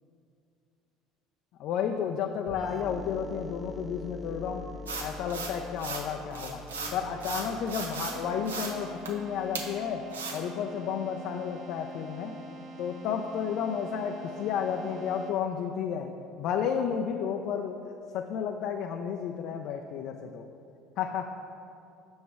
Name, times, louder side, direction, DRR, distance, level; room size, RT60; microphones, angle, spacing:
voice 1, 1.6-4.7 5.0-6.7 6.9-10.1 10.3-12.4 12.8-20.5 21.0-21.4, left 7 dB, 60° left, 3 dB, 0.3 m, -32 dB
sound 1, 2.5-10.0, left 1 dB, 15° right, 0.4 m, -45 dB
sound 2, 4.9-6.1 6.3-8.2 8.4-8.7 9.1-9.2 9.5-9.7 10.1-10.4, right 4 dB, 90° right, 0.6 m, -36 dB
Keyboard (musical), 6.7-15.7, right 1 dB, 65° right, 0.9 m, -45 dB
6.8 x 3.1 x 5.9 m, 2.7 s
hypercardioid pair, 65°, 0 cm